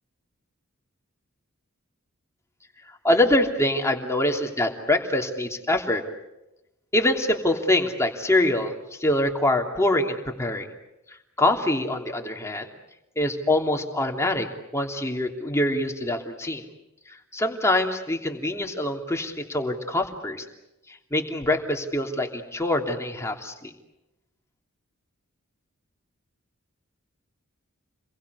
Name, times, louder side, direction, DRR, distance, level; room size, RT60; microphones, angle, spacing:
voice 1, 2.9-6.0 6.9-10.7 11.1-12.7 13.2-14.5 14.7-16.6 17.1-20.4 20.9-23.7, left 1 dB, 15° left, 2 dB, 3.0 m, -24 dB
30.0 x 22.5 x 8.2 m, 0.94 s
head